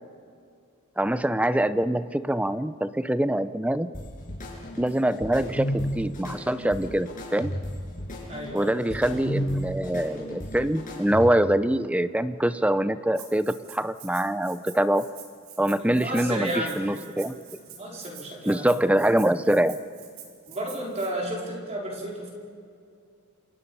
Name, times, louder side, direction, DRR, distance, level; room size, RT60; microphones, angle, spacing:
voice 1, 1.0-3.9 4.8-7.5 8.5-15.1 15.6-17.3 18.5-19.8, right 1 dB, 5° right, 13 dB, 0.6 m, -24 dB
sound 1, 3.9-11.6, equal, 40° left, 6.7 m, -33 dB
voice 2, 8.3-9.2 15.8-16.8 17.7-18.7 20.5-22.3, right 1 dB, 30° right, -2 dB, 4.6 m, -33 dB
Rattle (instrument), 13.1-21.1, right 8 dB, 70° right, 3.9 m, -46 dB
28.5 x 27.0 x 5.6 m, 2.3 s
head